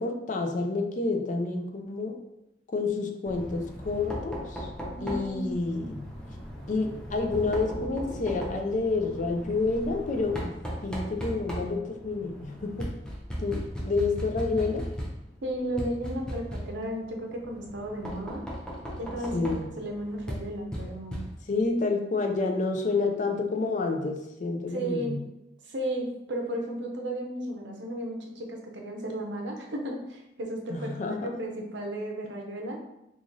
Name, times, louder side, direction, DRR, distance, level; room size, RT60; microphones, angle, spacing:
voice 1, 0.0-2.2 2.7-4.7 5.0-6.0 6.7-10.5 10.8-12.9 13.4-14.9 19.3-19.7 21.5-25.2 30.7-31.4, left 3 dB, 45° left, 4 dB, 0.4 m, -29 dB
Knock, 3.3-21.7, equal, 5° left, 0.6 m, -38 dB
voice 2, 5.0-5.5 15.4-18.4 18.9-19.5 19.8-21.2 24.7-25.2 25.6-32.8, right 1 dB, 85° right, 2 dB, 0.7 m, -34 dB
3.0 x 2.5 x 3.8 m, 0.86 s
head